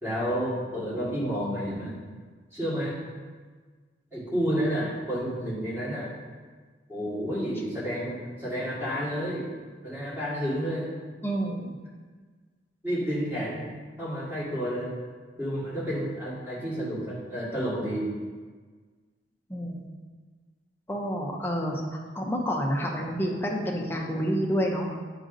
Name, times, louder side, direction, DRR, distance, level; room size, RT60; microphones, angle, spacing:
voice 1, 0.0-1.9 2.5-3.0 4.1-6.1 6.9-9.5 9.8-10.9 12.8-13.7 14.0-14.9 15.4-18.1, equal, 10° right, -9 dB, 1.7 m, -30 dB
voice 2, 11.2-11.7 19.5-19.9 20.9-25.0, equal, 10° left, -1 dB, 0.6 m, -29 dB
7.8 x 4.9 x 2.6 m, 1.5 s
head